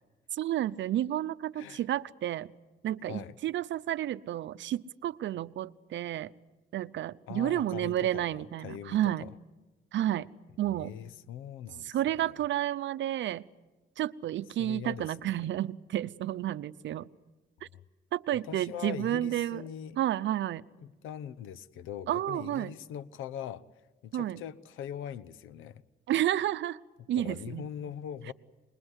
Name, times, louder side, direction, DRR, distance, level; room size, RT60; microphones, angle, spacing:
voice 1, 0.3-2.5 2.8-6.3 6.7-9.3 9.9-10.3 10.6-10.9 11.8-13.5 14.0-17.1 17.6-17.7 18.1-19.6 20.0-20.7 22.1-22.7 24.1-24.4 26.1-26.8 27.1-27.7, right 12 dB, 70° right, 15 dB, 0.7 m, -31 dB
voice 2, 1.5-1.9 3.1-3.4 7.3-9.3 10.7-12.3 14.6-15.5 17.7-17.8 18.3-20.0 20.8-23.6 24.0-25.8 27.2-28.3, left 9 dB, 85° left, 17 dB, 0.9 m, -42 dB
26.5 x 21.5 x 8.1 m, 1.1 s
cardioid pair, 90°, 20 cm